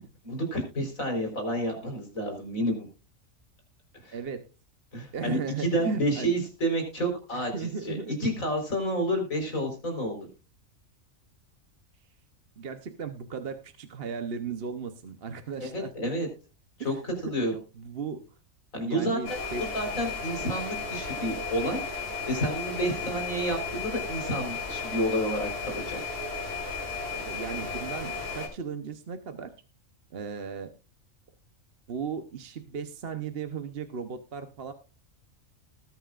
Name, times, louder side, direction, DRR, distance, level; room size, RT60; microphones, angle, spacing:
voice 1, 0.2-2.9 4.0-4.1 4.9-10.3 15.6-16.3 16.8-17.6 18.7-19.4 19.7-21.8 22.3-26.0, right 1 dB, 85° left, 3 dB, 4.7 m, -30 dB
voice 2, 4.1-4.5 5.1-6.4 7.3-8.3 12.6-15.9 16.8-18.2 18.8-19.7 22.7-22.9 27.1-29.5 30.1-30.7 31.9-34.7, right 6 dB, 50° right, 8 dB, 1.1 m, -36 dB
sound 1, 19.2-28.5, left 4 dB, 65° left, 4.8 m, -34 dB
20.0 x 9.1 x 2.5 m, 0.32 s
omnidirectional pair, 1.4 m